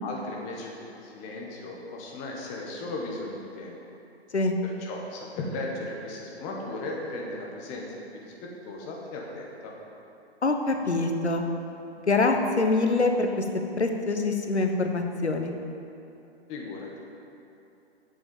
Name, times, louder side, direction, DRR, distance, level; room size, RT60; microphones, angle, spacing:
voice 1, 0.0-3.8 4.6-9.7 16.5-17.0, left 2 dB, 20° left, -1 dB, 1.6 m, -36 dB
voice 2, 10.4-11.4 12.1-13.5 13.8-15.5, left 3 dB, 80° left, 4 dB, 1.3 m, -25 dB
8.1 x 8.0 x 7.3 m, 2.7 s
figure-of-eight pair, 130°, 33 cm